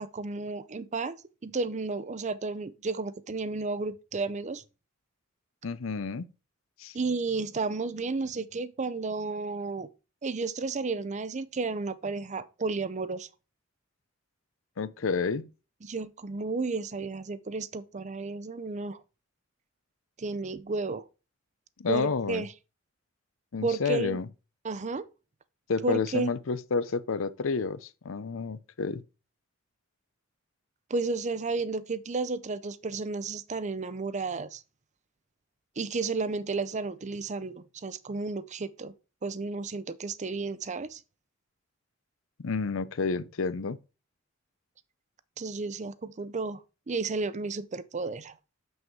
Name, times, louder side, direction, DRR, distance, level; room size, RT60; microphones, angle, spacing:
voice 1, 0.0-4.6 6.9-9.9 10.2-13.3 15.8-19.0 20.2-21.1 21.9-22.5 23.6-24.2 24.6-25.1 25.8-26.3 30.9-34.6 35.8-38.9 39.2-41.0 45.4-46.6 46.9-48.3, right 3 dB, 35° right, 0.6 m, -32 dB
voice 2, 5.6-6.3 6.8-6.9 14.8-15.5 21.8-22.4 23.5-24.3 25.7-29.0 42.4-43.8, left 4 dB, 80° left, 0.6 m, -30 dB
7.0 x 6.3 x 4.6 m
head